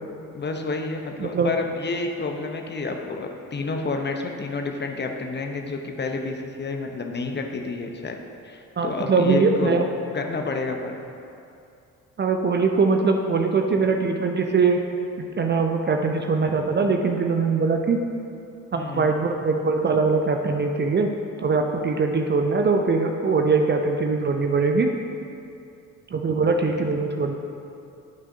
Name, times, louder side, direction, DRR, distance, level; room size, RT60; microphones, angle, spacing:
voice 1, 0.3-8.2 8.4-9.8 10.1-11.0 18.8-19.1, left 3 dB, 25° left, 3 dB, 0.8 m, -29 dB
voice 2, 1.2-1.5 8.8-9.9 12.2-14.8 15.2-18.0 18.7-21.1 21.4-24.9 26.1-27.3, right 4 dB, 25° right, 4 dB, 0.6 m, -22 dB
17.5 x 6.0 x 2.7 m, 2.7 s
figure-of-eight pair, 45°, 41 cm